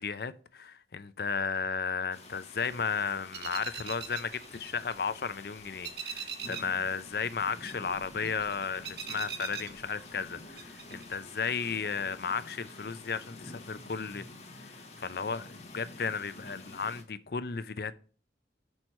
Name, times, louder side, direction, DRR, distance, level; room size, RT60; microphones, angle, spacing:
voice 1, 0.0-14.2 14.6-17.9, left 5 dB, 60° left, 0.5 m, -34 dB
sound 1, 2.1-17.0, left 2 dB, 40° left, 1.1 m, -49 dB
sound 2, 3.3-5.3 5.6-6.8 7.1-10.3 10.6-11.2, right 7 dB, 70° right, 0.9 m, -41 dB
6.2 x 4.5 x 5.4 m
head